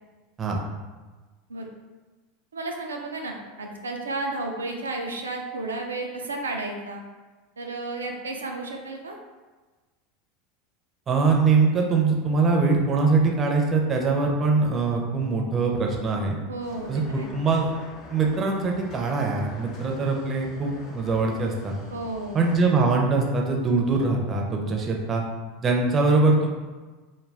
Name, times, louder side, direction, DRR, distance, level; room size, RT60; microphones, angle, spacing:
voice 1, 2.5-7.0 7.6-9.2 16.5-17.3 21.9-22.4, right 2 dB, 90° right, 2 dB, 0.3 m, -32 dB
voice 2, 11.1-16.4 16.9-17.7 18.1-21.8 22.3-25.2 25.6-26.5, right 3 dB, 30° right, 0 dB, 0.5 m, -22 dB
sound 1, 16.6-22.7, left 2 dB, 45° left, 0.7 m, -45 dB
2.3 x 2.2 x 3.3 m, 1.3 s
hypercardioid pair, 85°, 0 cm